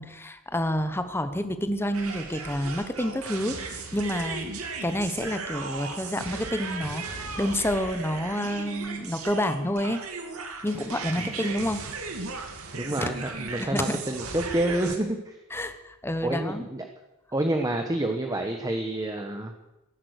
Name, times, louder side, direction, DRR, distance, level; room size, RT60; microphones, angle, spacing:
voice 1, 0.0-10.0 10.6-11.8 13.0-13.1 13.6-14.0 15.5-16.7, left 1 dB, 10° left, 10 dB, 1.1 m, -29 dB
sound 1, 1.9-15.0, right 4 dB, 75° right, 2.5 m, -36 dB
voice 2, 12.7-15.4 16.2-16.8 17.3-19.5, right 1 dB, 15° right, 4 dB, 1.1 m, -28 dB
15.5 x 11.0 x 8.1 m, 1.0 s
head